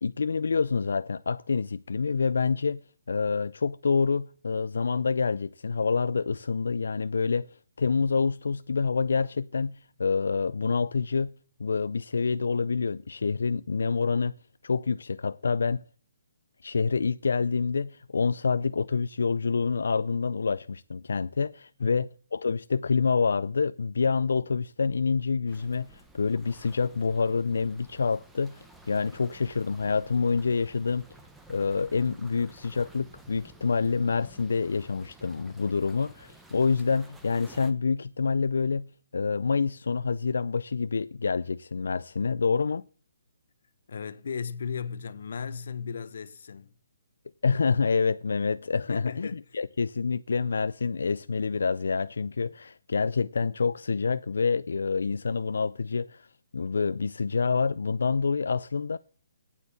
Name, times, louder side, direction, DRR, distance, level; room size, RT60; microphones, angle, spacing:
voice 1, 0.0-2.8 3.1-7.5 7.8-11.3 11.6-14.3 14.6-15.8 16.6-31.1 31.5-38.9 39.1-42.8 47.4-56.3 56.5-59.0, left 5 dB, 85° left, 0.4 m, -27 dB
sound 1, 25.5-37.7, right 2 dB, 5° right, 0.9 m, -53 dB
voice 2, 43.9-46.7 48.9-49.4, left 6 dB, 60° left, 0.9 m, -36 dB
9.1 x 8.1 x 7.4 m
hypercardioid pair, 170°, 0 cm